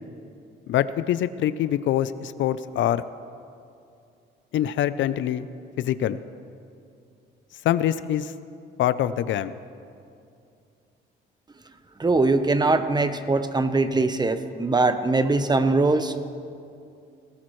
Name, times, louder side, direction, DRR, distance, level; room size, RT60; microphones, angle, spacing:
voice 1, 0.7-3.0 4.5-5.5 5.8-6.2 7.6-8.3 8.8-9.5, left 11 dB, 75° left, 14 dB, 0.5 m, -24 dB
voice 2, 12.0-16.3, right 3 dB, 20° right, 10 dB, 0.8 m, -22 dB
18.5 x 16.5 x 3.2 m, 2.5 s
cardioid pair, 90°, 20 cm